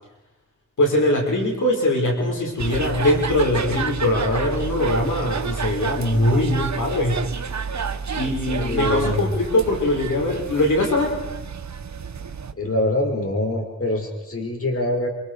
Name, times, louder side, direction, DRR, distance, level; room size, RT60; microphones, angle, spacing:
voice 1, 0.8-7.2 8.1-11.2, left 1 dB, 80° left, -1 dB, 5.8 m, -21 dB
sound 1, 2.6-12.5, right 6 dB, 65° right, 1.5 m, -30 dB
voice 2, 8.5-9.3 12.5-15.1, left 1 dB, 45° left, 2 dB, 5.7 m, -24 dB
28.0 x 27.0 x 5.0 m, 1.0 s
cardioid pair, 50°, 30 cm